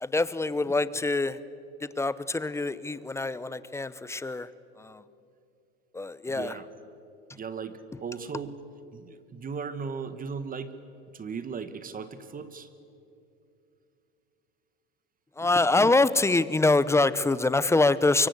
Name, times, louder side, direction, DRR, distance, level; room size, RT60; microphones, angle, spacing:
voice 1, 0.0-1.4 1.8-4.5 4.8-5.0 5.9-6.6 15.4-18.3, left 2 dB, 10° left, 16 dB, 0.8 m, -25 dB
voice 2, 6.3-6.7 7.3-8.6 8.9-10.8 11.1-12.7, right 5 dB, 25° right, 12 dB, 1.6 m, -37 dB
24.0 x 24.0 x 8.1 m, 2.7 s
hypercardioid pair, 105°, 33 cm